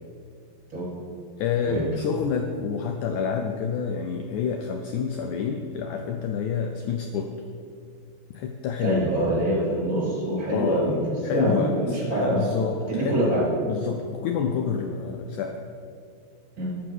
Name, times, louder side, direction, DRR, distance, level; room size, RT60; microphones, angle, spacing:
voice 1, 1.4-7.3 8.3-9.1 10.5-10.9 11.2-13.4 13.7-15.6, left 6 dB, 90° left, 5 dB, 1.7 m, -28 dB
voice 2, 8.8-11.0 11.3-12.4 12.9-13.4 16.6-16.7, right 1 dB, 25° right, -5 dB, 3.9 m, -25 dB
13.0 x 7.6 x 6.3 m, 2.4 s
omnidirectional pair, 4.3 m